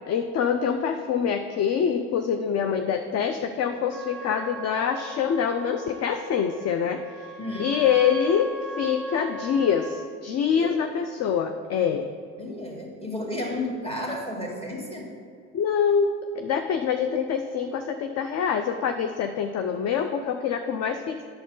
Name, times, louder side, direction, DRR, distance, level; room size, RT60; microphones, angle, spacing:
voice 1, 0.1-7.3 7.6-8.5 8.8-12.1 15.5-21.2, left 7 dB, 40° left, 7 dB, 0.5 m, -25 dB
Trumpet, 3.9-10.1, right 1 dB, 5° right, 1.9 m, -40 dB
voice 2, 7.4-7.7 10.5-10.7 12.4-15.1, left 1 dB, 15° left, -1 dB, 2.0 m, -32 dB
9.2 x 6.7 x 3.9 m, 2.2 s
hypercardioid pair, 70°, 39 cm